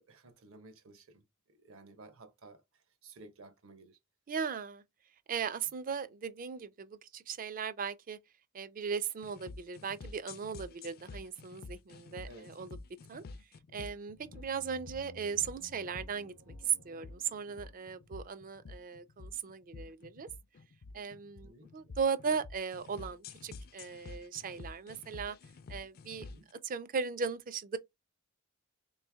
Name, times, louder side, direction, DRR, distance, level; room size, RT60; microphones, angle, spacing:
voice 1, 0.0-4.0 11.5-11.6 12.2-12.8 21.4-21.7 26.1-26.5, right 2 dB, 65° right, 1.0 m, -55 dB
voice 2, 4.3-4.8 5.3-8.2 8.5-12.8 13.1-13.2 13.7-20.3 20.9-25.4 25.7-26.2 26.6-27.8, right 6 dB, 40° right, 0.4 m, -37 dB
sound 1, 9.2-26.5, left 3 dB, 45° left, 0.4 m, -49 dB
sound 2, 14.1-18.6, equal, 85° right, 1.3 m, -56 dB
3.4 x 3.1 x 3.4 m
head